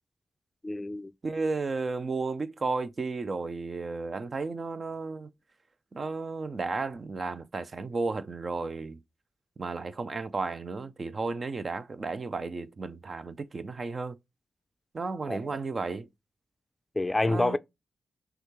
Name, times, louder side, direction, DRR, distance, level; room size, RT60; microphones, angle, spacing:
voice 1, 0.6-1.1 15.3-15.4 17.0-17.6, left 2 dB, 20° left, 0.4 m, -27 dB
voice 2, 1.2-5.3 5.9-9.0 9.6-14.2 14.9-16.1 17.3-17.6, right 3 dB, 50° right, 0.5 m, -33 dB
6.2 x 2.4 x 3.0 m
supercardioid pair, 45°, 0 cm